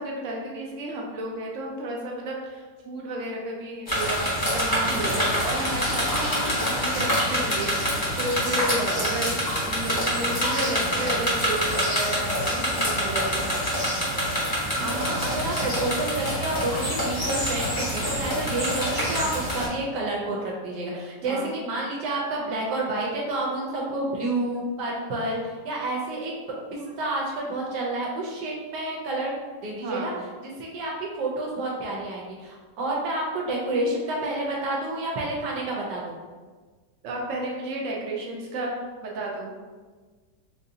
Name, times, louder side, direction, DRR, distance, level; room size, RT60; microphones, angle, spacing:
voice 1, 0.0-13.6 21.2-21.5 24.5-24.6 29.8-30.2 37.0-38.7 39.0-39.5, right 1 dB, 65° right, -1 dB, 0.8 m, -32 dB
sound 1, 3.9-19.7, equal, 25° left, 0.5 m, -26 dB
voice 2, 14.8-26.3 26.7-29.3 29.6-30.1 30.6-36.2, right 2 dB, 80° right, -3 dB, 1.2 m, -29 dB
3.8 x 2.5 x 2.7 m, 1.4 s
omnidirectional pair, 1.9 m